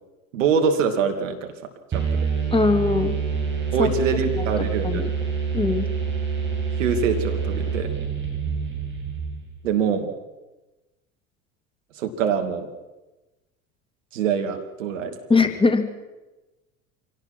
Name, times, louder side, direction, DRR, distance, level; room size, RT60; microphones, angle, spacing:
voice 1, 0.3-1.5 1.9-2.3 3.7-5.0 6.8-7.9 9.6-10.1 12.0-12.7 14.1-15.2, right 6 dB, 70° right, 5 dB, 2.7 m, -24 dB
sound 1, 1.9-9.6, right 6 dB, 30° right, 7.7 m, -26 dB
voice 2, 2.5-3.2 3.8-3.9 4.8-5.1 5.5-5.9 15.3-15.9, left 3 dB, 15° left, 6 dB, 2.4 m, -20 dB
26.0 x 17.5 x 6.1 m, 1.1 s
figure-of-eight pair, 70°, 40 cm